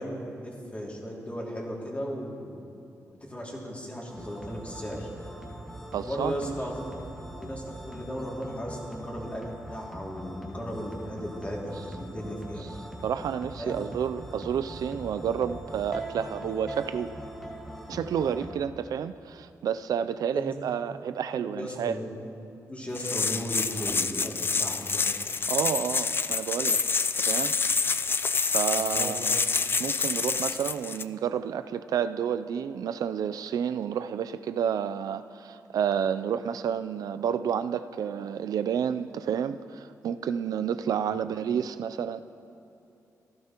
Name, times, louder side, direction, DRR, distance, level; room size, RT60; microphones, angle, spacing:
voice 1, 0.0-2.6 3.2-5.1 6.0-7.0 7.4-9.4 9.7-12.6 13.6-13.8 20.3-20.5 21.5-22.1 22.7-25.0 28.7-29.1, equal, 20° left, -3 dB, 2.5 m, -36 dB
sound 1, 4.1-18.5, right 1 dB, 5° left, 1.8 m, -41 dB
voice 2, 5.9-6.5 13.0-17.1 17.9-22.0 25.5-26.8 27.2-27.5 28.5-29.4 29.8-42.2, right 8 dB, 80° right, 12 dB, 0.4 m, -30 dB
sound 2, 23.0-31.0, left 4 dB, 35° left, 0.4 m, -27 dB
16.0 x 12.0 x 3.0 m, 2.7 s
cardioid pair, 70°, 6 cm